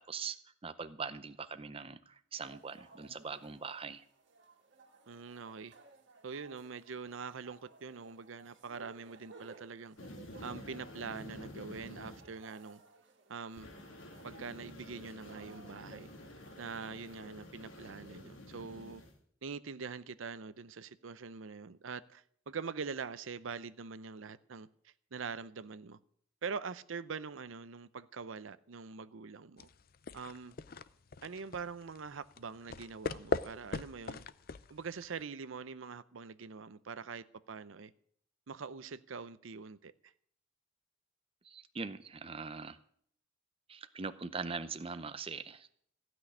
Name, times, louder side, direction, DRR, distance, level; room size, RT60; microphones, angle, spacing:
voice 1, 0.0-4.0 41.4-42.8 43.7-45.7, right 5 dB, 30° right, 0.6 m, -42 dB
sound 1, 2.4-17.0, right 3 dB, 60° right, 2.1 m, -59 dB
voice 2, 5.1-5.7 6.2-10.0 10.4-12.8 13.3-13.7 14.2-16.1 16.6-19.0 19.4-26.0 26.4-29.7 30.1-30.5 31.2-34.2 34.7-37.9 38.5-40.1, right 5 dB, 75° right, 0.6 m, -44 dB
sound 2, 10.0-12.2 13.6-19.1, left 1 dB, 85° left, 2.8 m, -50 dB
sound 3, 29.6-35.2, left 4 dB, 45° left, 0.5 m, -40 dB
15.5 x 6.3 x 10.0 m
head